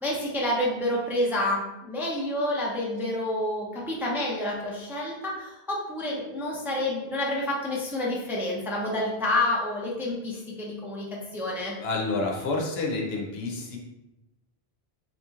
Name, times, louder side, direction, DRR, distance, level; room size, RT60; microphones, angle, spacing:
voice 1, 0.0-11.8, left 1 dB, 5° right, -4 dB, 0.5 m, -29 dB
voice 2, 11.8-13.8, left 3 dB, 75° left, 0 dB, 0.9 m, -29 dB
3.9 x 2.9 x 2.4 m, 0.97 s
omnidirectional pair, 1.0 m